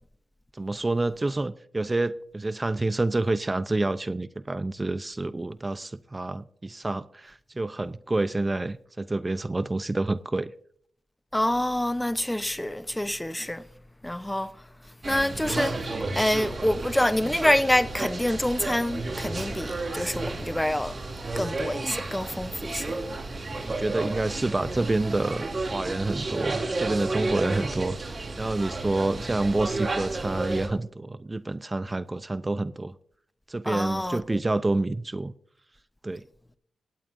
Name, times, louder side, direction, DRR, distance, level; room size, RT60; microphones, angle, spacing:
voice 1, 0.5-10.5 23.6-25.5 25.7-28.0 28.4-32.9 33.5-35.3 36.0-36.2, right 2 dB, 25° right, 0.6 m, -28 dB
voice 2, 11.3-13.6 14.0-14.5 15.0-21.0 21.4-23.0 27.4-27.5 33.6-34.4, left 1 dB, 10° left, 0.8 m, -27 dB
sound 1, 15.0-30.7, right 2 dB, 45° right, 4.6 m, -32 dB
18.0 x 16.5 x 2.6 m
cardioid pair, 55°, 0 cm